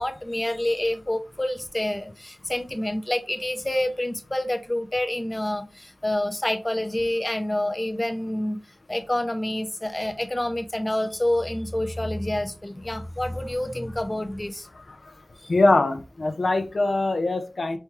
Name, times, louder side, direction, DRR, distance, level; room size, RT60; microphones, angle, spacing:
voice 1, 0.0-8.6 8.9-14.7 15.4-15.5, left 1 dB, 25° left, 8 dB, 0.6 m, -28 dB
voice 2, 15.5-17.8, left 2 dB, 75° left, 8 dB, 0.7 m, -22 dB
4.3 x 3.5 x 3.0 m, 0.31 s
wide cardioid pair, 75°, 0 cm